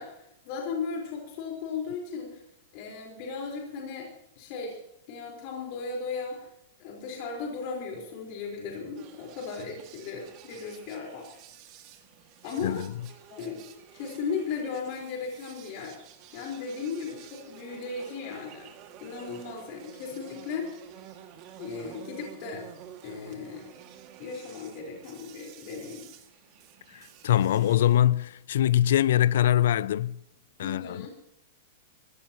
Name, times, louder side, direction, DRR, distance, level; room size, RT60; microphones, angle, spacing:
voice 1, 0.0-2.4 2.7-4.1 4.4-4.8 5.1-6.5 6.8-11.2 12.4-12.8 13.3-13.6 13.9-16.0 16.3-18.7 19.0-20.7 21.6-22.7 23.0-23.7 24.2-26.1 30.6-31.1, left 5 dB, 45° left, 4.4 m, -36 dB
sound 1, 8.9-28.0, right 10 dB, 40° right, 2.1 m, -50 dB
voice 2, 26.9-30.2 30.6-31.1, left 11 dB, 75° left, 0.4 m, -23 dB
21.0 x 16.5 x 3.0 m
supercardioid pair, 150°, 0 cm